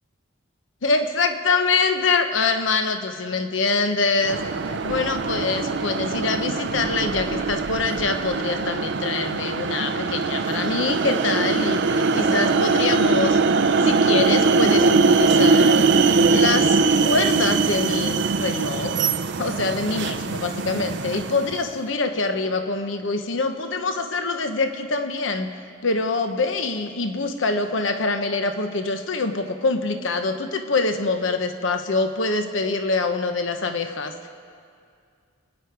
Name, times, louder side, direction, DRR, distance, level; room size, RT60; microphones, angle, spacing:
voice 1, 0.8-4.4 4.7-13.4 13.8-15.8 16.3-19.0 19.4-25.5 25.8-34.3, left 3 dB, 70° left, 7 dB, 0.9 m, -25 dB
sound 1, 4.2-21.7, right 4 dB, 60° right, 0.5 m, -21 dB
27.5 x 9.6 x 4.7 m, 2.3 s
head